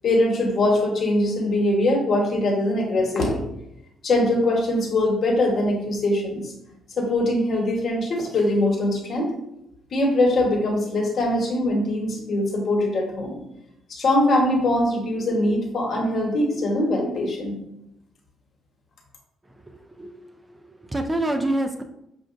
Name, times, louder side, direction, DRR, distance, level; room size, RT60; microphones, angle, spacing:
voice 1, 0.0-3.4 4.0-6.5 7.0-9.3 9.9-13.4 13.9-17.6, left 1 dB, 55° left, 0 dB, 1.1 m, -22 dB
voice 2, 19.6-21.8, right 1 dB, 15° right, 6 dB, 0.4 m, -28 dB
6.3 x 2.4 x 2.5 m, 0.82 s
cardioid pair, 90°, 0 cm